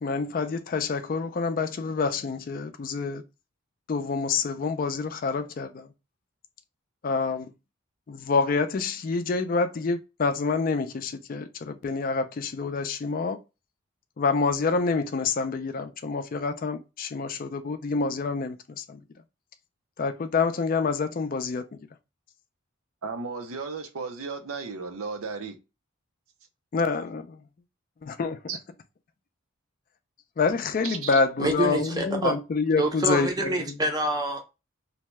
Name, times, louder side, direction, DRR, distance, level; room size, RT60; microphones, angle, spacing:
voice 1, 0.0-3.2 3.9-5.9 7.0-7.5 8.1-13.4 14.2-19.0 20.0-21.6 26.7-27.4 28.0-28.4 30.4-33.7, left 4 dB, 40° left, 0.3 m, -27 dB
voice 2, 23.0-25.6 28.5-28.6 30.8-31.2, right 4 dB, 85° right, 0.6 m, -34 dB
voice 3, 31.4-32.3 32.8-34.4, right 1 dB, 20° right, 0.6 m, -26 dB
2.7 x 2.2 x 3.0 m
head